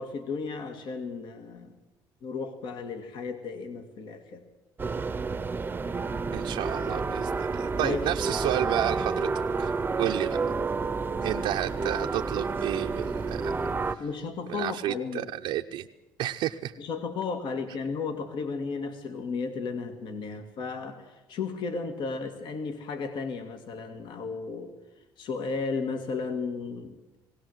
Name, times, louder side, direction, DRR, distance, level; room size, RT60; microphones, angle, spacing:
voice 1, 0.0-1.7 2.2-4.4 7.8-8.0 14.0-15.3 16.8-24.7 25.2-27.0, left 4 dB, 65° left, 8 dB, 2.0 m, -34 dB
sound 1, 4.8-13.9, right 4 dB, 20° right, 0.8 m, -30 dB
voice 2, 6.3-9.3 9.6-10.4 11.2-13.5 13.9-14.0 14.5-15.9 16.2-16.7, right 13 dB, 75° right, 3 dB, 0.7 m, -31 dB
20.0 x 17.5 x 7.9 m, 1.0 s
cardioid pair, 120°, 9 cm